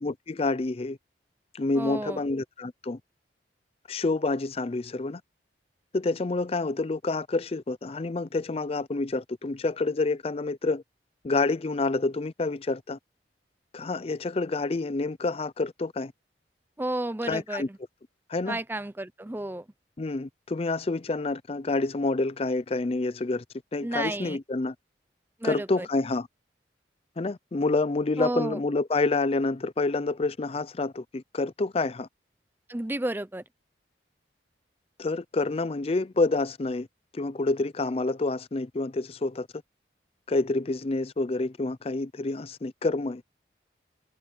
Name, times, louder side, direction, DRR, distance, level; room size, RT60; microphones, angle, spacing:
voice 1, 0.0-1.0 1.5-3.0 3.9-5.2 5.9-10.8 11.2-13.0 13.7-16.1 17.3-17.7 18.3-18.6 20.0-23.4 23.7-24.7 25.4-26.3 27.2-32.1 35.0-36.9 37.1-39.5 40.3-43.2, left 3 dB, 35° left, 0.5 m, -28 dB
voice 2, 1.7-2.2 16.8-17.8 18.5-19.6 23.8-24.4 25.4-25.9 28.2-28.6 32.7-33.4, right 1 dB, 10° right, 0.6 m, -32 dB
head